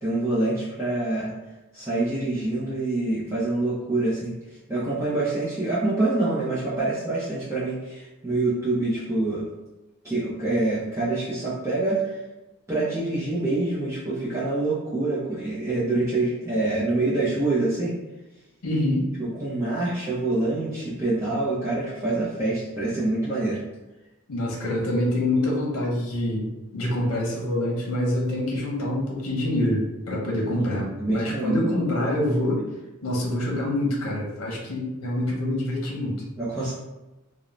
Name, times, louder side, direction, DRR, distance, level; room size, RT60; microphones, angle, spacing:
voice 1, 0.0-1.3 1.7-4.3 4.7-9.5 10.0-12.2 12.7-17.9 19.2-23.6 30.7-31.6 36.4-36.7, right 2 dB, 15° right, -9 dB, 0.5 m, -26 dB
voice 2, 18.6-19.1 24.3-32.6 33.0-36.2, left 1 dB, 85° left, -2 dB, 0.7 m, -26 dB
2.5 x 2.0 x 3.0 m, 1.0 s
head